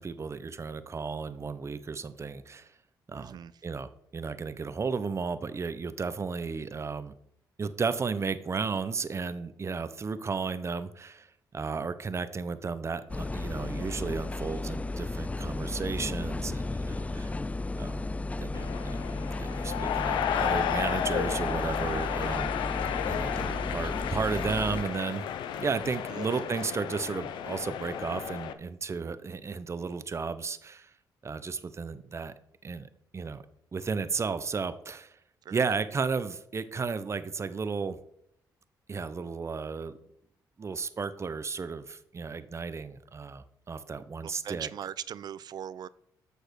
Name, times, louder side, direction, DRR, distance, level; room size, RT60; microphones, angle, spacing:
voice 1, 0.0-2.7 3.1-7.1 7.6-17.3 17.8-18.0 18.4-19.1 19.4-22.5 22.8-25.2 25.6-30.9 31.2-32.3 32.6-33.4 33.7-35.2 35.5-38.0 38.9-39.9 40.6-44.7, right 5 dB, 35° right, 0.9 m, -34 dB
voice 2, 3.1-3.5 26.1-26.3 35.4-35.6 44.2-45.9, right 9 dB, 60° right, 0.5 m, -40 dB
sound 1, 13.1-24.8, left 2 dB, 15° left, 0.4 m, -34 dB
sound 2, 18.5-28.5, left 9 dB, 85° left, 0.8 m, -33 dB
8.1 x 6.4 x 6.4 m
cardioid pair, 75°, 8 cm